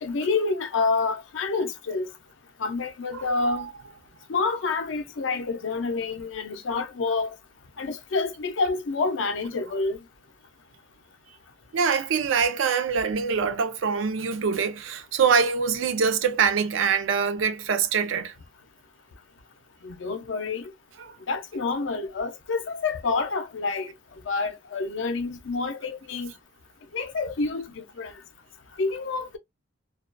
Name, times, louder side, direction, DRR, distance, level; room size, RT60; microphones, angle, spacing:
voice 1, 0.0-2.1 2.6-3.7 4.3-7.3 7.8-10.0 19.8-20.7 21.3-23.9 24.3-26.3 26.9-28.1 28.8-29.4, left 4 dB, 70° left, 0.5 m, -28 dB
voice 2, 3.1-3.7 11.7-18.3 21.0-21.1, right 6 dB, 75° right, 0.4 m, -24 dB
2.3 x 2.2 x 2.4 m
head